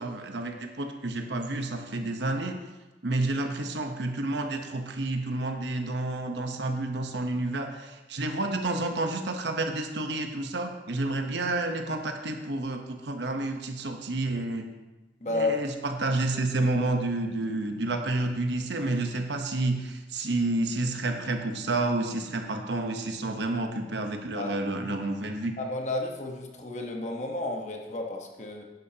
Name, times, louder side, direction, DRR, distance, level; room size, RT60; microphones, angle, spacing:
voice 1, 0.0-2.6 3.0-14.7 15.3-25.5, right 2 dB, 80° right, 5 dB, 1.0 m, -30 dB
voice 2, 15.2-15.6 24.4-24.5 25.6-28.6, left 2 dB, 40° left, 2 dB, 1.1 m, -31 dB
10.5 x 10.0 x 2.9 m, 1.1 s
head